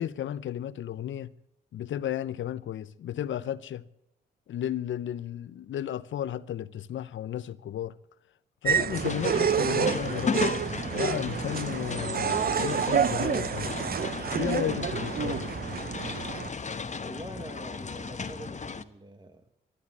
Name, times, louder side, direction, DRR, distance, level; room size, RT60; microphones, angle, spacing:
voice 1, 0.0-1.3 1.7-3.9 4.5-8.0 8.6-10.5 10.9-13.8 14.4-15.5, left 11 dB, 70° left, 0.8 m, -33 dB
sound 1, 8.6-16.5, right 8 dB, 50° right, 0.6 m, -29 dB
sound 2, 8.9-18.8, left 4 dB, 35° left, 1.1 m, -35 dB
voice 2, 17.0-19.5, right 1 dB, 20° right, 1.4 m, -45 dB
13.5 x 11.5 x 8.8 m
supercardioid pair, 50°, 20 cm